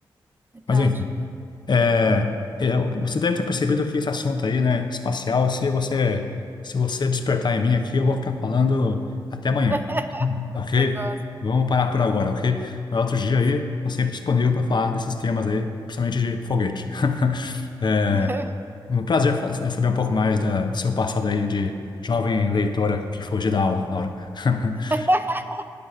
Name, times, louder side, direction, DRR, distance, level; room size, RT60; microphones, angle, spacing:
voice 1, 0.7-1.1 1.7-6.3 6.6-9.1 9.3-9.8 10.2-11.0 11.4-18.3 18.9-24.9, left 4 dB, 50° left, 7 dB, 0.8 m, -23 dB
voice 2, 9.7-11.2 18.1-18.5 24.9-25.6, right 1 dB, 25° right, 8 dB, 0.5 m, -27 dB
9.7 x 6.9 x 5.4 m, 2.4 s
supercardioid pair, 40°, 9 cm